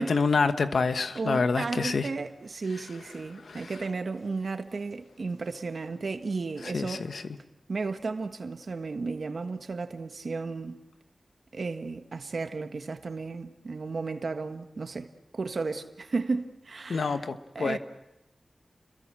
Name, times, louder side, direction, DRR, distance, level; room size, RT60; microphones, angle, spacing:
voice 1, 0.0-2.1 3.5-3.7 6.7-7.2 16.9-17.8, left 4 dB, 90° left, 1.3 m, -27 dB
voice 2, 1.1-7.1 7.7-10.8 11.5-17.2 17.5-17.8, right 4 dB, 70° right, 1.5 m, -34 dB
30.0 x 22.5 x 7.6 m
wide cardioid pair, 55°, 0 cm